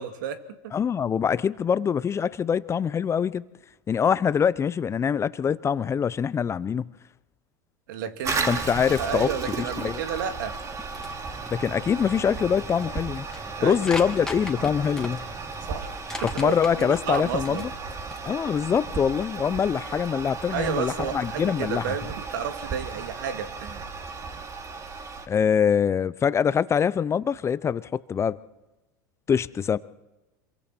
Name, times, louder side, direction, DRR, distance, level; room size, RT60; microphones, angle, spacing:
voice 1, 0.0-0.7 7.9-8.6 8.9-10.5 13.6-14.1 15.7-17.7 20.5-23.9, right 8 dB, 70° right, 8 dB, 2.2 m, -32 dB
voice 2, 0.7-3.4 3.9-6.9 8.5-9.3 9.6-10.0 11.5-13.2 13.6-15.2 16.4-17.7 18.2-21.8 25.3-28.4 29.3-29.8, left 7 dB, 25° left, 17 dB, 0.7 m, -24 dB
Toilet flush, 8.2-25.3, right 4 dB, 30° right, 2.9 m, -35 dB
sound 1, 10.1-18.3, left 2 dB, 5° left, 3.0 m, -41 dB
26.5 x 23.0 x 4.5 m, 1.0 s
hypercardioid pair, 95°, 11 cm